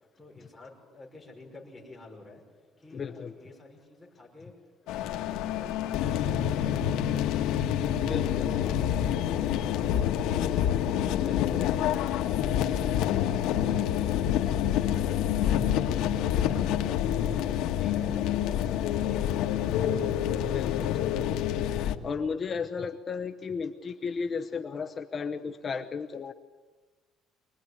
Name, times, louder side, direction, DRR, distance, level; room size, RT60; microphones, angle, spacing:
voice 1, 0.2-2.4 2.8-4.5 4.8-7.8 8.2-10.9 16.1-20.3, left 3 dB, ahead, 1 dB, 5.8 m, -49 dB
voice 2, 2.9-3.3 8.0-8.5 11.2-11.6 20.5-21.4 21.7-26.3, left 5 dB, 25° left, 6 dB, 0.8 m, -34 dB
sound 1, 4.9-22.0, left 10 dB, 85° left, 1.4 m, -27 dB
24.5 x 21.0 x 9.8 m, 1.3 s
cardioid pair, 175°, 0 cm